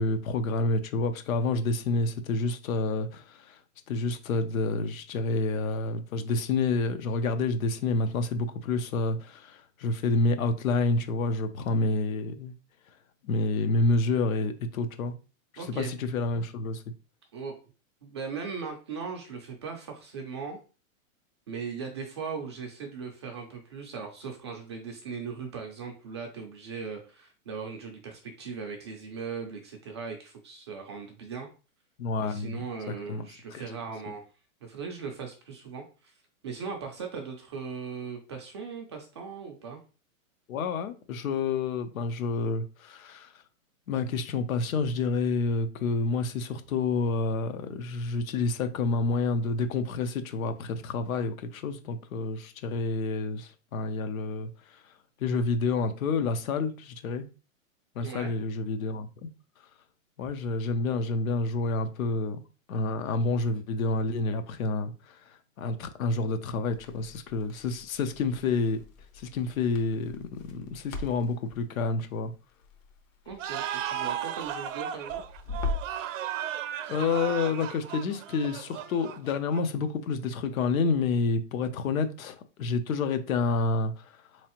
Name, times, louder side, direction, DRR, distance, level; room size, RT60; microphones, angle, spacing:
voice 1, 0.0-3.6 3.9-12.5 13.2-15.1 15.5-16.8 32.0-32.6 33.1-33.8 40.5-43.4 43.9-54.8 55.2-57.3 57.9-59.1 60.2-62.4 62.7-68.8 69.1-72.3 76.9-84.2, left 3 dB, 85° left, 0.9 m, -29 dB
voice 2, 15.6-15.9 17.3-17.6 18.0-20.6 21.5-31.5 32.2-34.2 34.6-36.1 36.4-39.8 58.0-58.3 73.3-75.2, right 5 dB, 25° right, 0.3 m, -38 dB
Crackle, 66.7-76.0, left 3 dB, 65° left, 1.1 m, -41 dB
sound 1, 73.4-79.8, right 10 dB, 65° right, 0.6 m, -35 dB
3.8 x 3.1 x 2.9 m
supercardioid pair, 155°, 40 cm